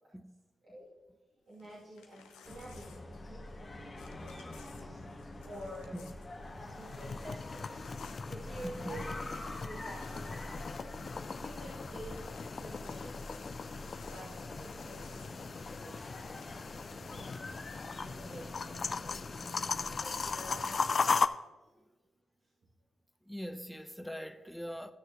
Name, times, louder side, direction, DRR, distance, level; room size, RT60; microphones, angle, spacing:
Crumpling crinkling / Tearing, 1.5-3.7 3.9-9.1 9.4-9.5 9.8-10.8 11.1-11.5 11.8-17.6 18.4-20.0, left 6 dB, 90° left, 0.8 m, -61 dB
voice 1, 1.5-2.9 3.3-3.7 4.0-4.4 5.4-5.9 6.7-7.8 8.3-9.2 9.5-10.9 11.4-12.1 12.6-13.4 14.1-14.2 14.6-16.2 17.1-17.3 18.0-18.4 18.7-19.2 20.0-21.0, right 1 dB, 60° right, 2.7 m, -49 dB
sound 1, 2.4-20.9, left 1 dB, 35° left, 1.7 m, -46 dB
sound 2, 6.5-21.3, left 5 dB, 50° left, 0.4 m, -38 dB
voice 2, 8.6-9.0 11.7-11.9 13.0-13.2 23.3-24.9, equal, 5° left, 0.8 m, -43 dB
15.5 x 6.4 x 3.0 m
hypercardioid pair, 40°, 0 cm